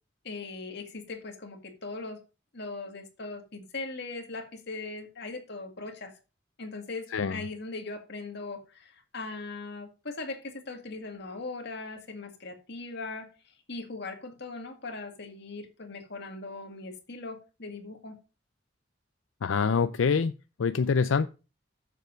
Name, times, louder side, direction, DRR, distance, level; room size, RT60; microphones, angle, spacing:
voice 1, 0.2-2.2 2.5-6.1 6.6-13.3 13.7-18.2, left 3 dB, 60° left, 2.0 m, -39 dB
voice 2, 7.1-7.4 19.4-20.3 20.6-21.3, left 5 dB, 90° left, 0.5 m, -25 dB
8.1 x 6.9 x 5.1 m
head